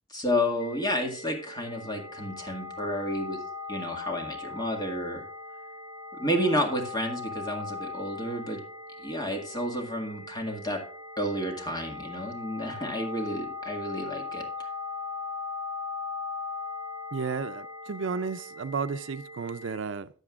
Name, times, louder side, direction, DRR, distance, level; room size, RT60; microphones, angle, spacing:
voice 1, 0.1-3.4 3.7-5.2 6.2-8.6 9.0-10.8 11.2-14.5, equal, 20° left, 1.9 m, -31 dB
sound 1, 0.6-19.7, left 4 dB, 90° left, 1.8 m, -39 dB
voice 2, 17.1-20.1, right 5 dB, 70° right, 0.5 m, -33 dB
14.5 x 8.9 x 2.4 m
head